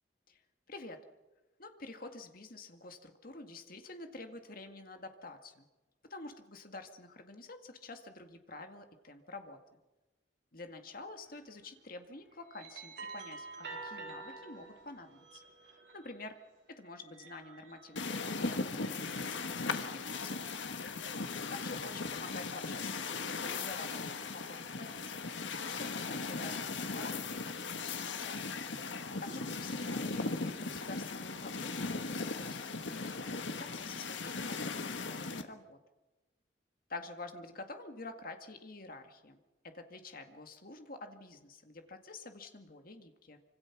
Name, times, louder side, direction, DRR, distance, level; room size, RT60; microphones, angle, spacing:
voice 1, 0.7-1.0 1.6-5.7 6.1-9.6 10.5-15.4 15.9-16.4 16.7-20.6 21.5-28.4 29.2-35.8 36.9-39.4 39.6-43.4, left 2 dB, 50° left, 6 dB, 2.0 m, -48 dB
sound 1, 11.2-11.5 12.2-16.4 16.9-18.0, right 3 dB, 70° right, 4.4 m, -48 dB
sound 2, 18.0-35.4, left 4 dB, 80° left, 1.6 m, -38 dB
26.0 x 25.5 x 6.0 m, 1.1 s
head